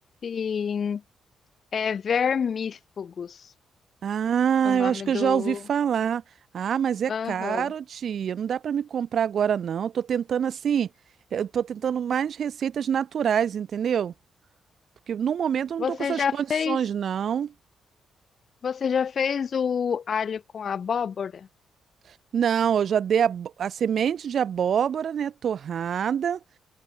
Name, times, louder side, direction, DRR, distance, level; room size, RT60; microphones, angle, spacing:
voice 1, 0.2-1.0 1.7-3.5 4.6-5.6 7.1-7.7 15.8-16.8 18.6-21.5, left 7 dB, 50° left, 1.9 m, -28 dB
voice 2, 4.0-6.2 6.5-10.9 11.3-14.1 15.1-17.5 22.3-26.4, right 8 dB, 60° right, 1.2 m, -25 dB
open air
cardioid pair, 95°, 0 cm